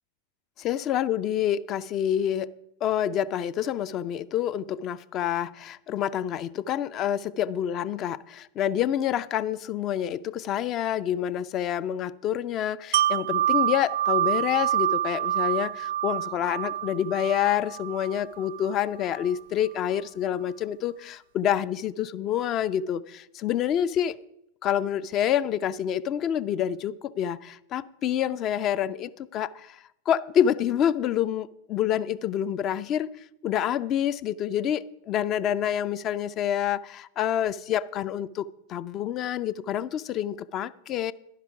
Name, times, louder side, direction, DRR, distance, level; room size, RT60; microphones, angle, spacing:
voice 1, 0.6-2.5 2.8-24.1 24.6-29.8 30.1-33.1 33.4-41.1, left 10 dB, 35° left, 17 dB, 0.4 m, -27 dB
Wind chime, 12.9-18.7 19.1-19.3, right 12 dB, 55° right, 0.3 m, -27 dB
11.0 x 10.5 x 4.7 m, 0.82 s
figure-of-eight pair, 90°, 0 cm